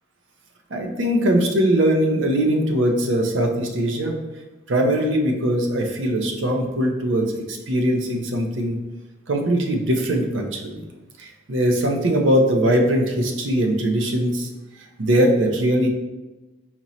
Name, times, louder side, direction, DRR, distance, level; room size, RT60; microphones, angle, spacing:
voice 1, 0.7-4.1 4.7-8.8 9.3-10.8 11.2-14.5 15.0-15.9, right 1 dB, 85° right, 3 dB, 0.7 m, -21 dB
4.3 x 3.0 x 4.2 m, 1.1 s
head